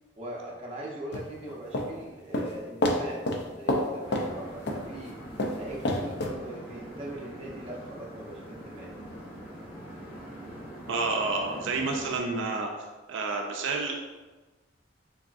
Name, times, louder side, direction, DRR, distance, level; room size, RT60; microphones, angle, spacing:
voice 1, 0.2-5.2 5.5-8.9, right 1 dB, 30° right, -4 dB, 0.7 m, -41 dB
sound 1, 1.1-1.9 2.3-2.5 2.8-3.0 3.3-3.4 3.7-3.9 4.1-4.3 4.7-4.8 5.4-6.3, left 1 dB, 55° left, 0.4 m, -27 dB
sound 2, 4.0-12.2, equal, 30° left, 1.4 m, -43 dB
voice 2, 10.9-12.7 13.1-14.0, right 3 dB, 80° right, 2 dB, 0.4 m, -29 dB
3.9 x 3.5 x 2.5 m, 1.2 s
head